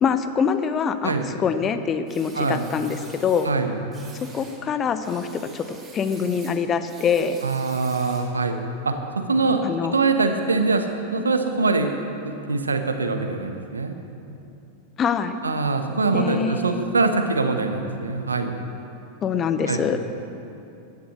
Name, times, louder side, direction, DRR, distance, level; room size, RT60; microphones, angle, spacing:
voice 1, 0.0-3.5 4.1-5.6 5.9-7.4 9.6-10.0 15.0-15.4 16.1-16.8 19.2-20.0, left 6 dB, 25° left, 10 dB, 0.9 m, -24 dB
sound 1, 2.1-3.5 3.9-4.6 5.0-8.4, right 4 dB, 20° right, 3.3 m, -47 dB
voice 2, 3.4-3.7 7.4-8.6 8.8-11.9 12.2-13.9 15.4-18.5 19.7-20.0, right 3 dB, 75° right, 6 dB, 1.3 m, -23 dB
16.0 x 11.5 x 6.7 m, 2.7 s
figure-of-eight pair, 90°, 0 cm